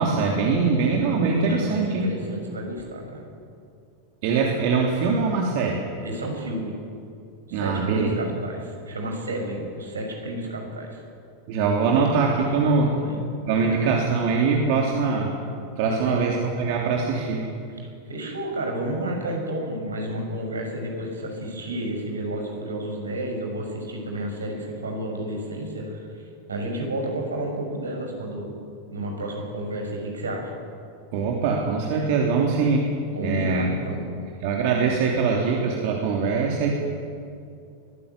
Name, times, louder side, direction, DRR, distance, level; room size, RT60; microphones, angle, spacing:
voice 1, 0.0-2.1 4.2-5.8 7.5-8.1 11.5-12.9 13.5-15.3 15.8-17.4 31.1-32.9 33.2-33.7 34.4-36.7, right 4 dB, 50° right, 0 dB, 3.1 m, -22 dB
voice 2, 1.4-3.2 6.0-6.7 7.5-11.0 12.6-13.2 13.5-13.8 15.8-16.4 17.8-26.1 26.5-28.5 28.9-30.5 33.1-34.0, right 1 dB, 80° right, 2 dB, 6.1 m, -31 dB
23.5 x 15.0 x 9.8 m, 2.5 s
figure-of-eight pair, 90°, 0 cm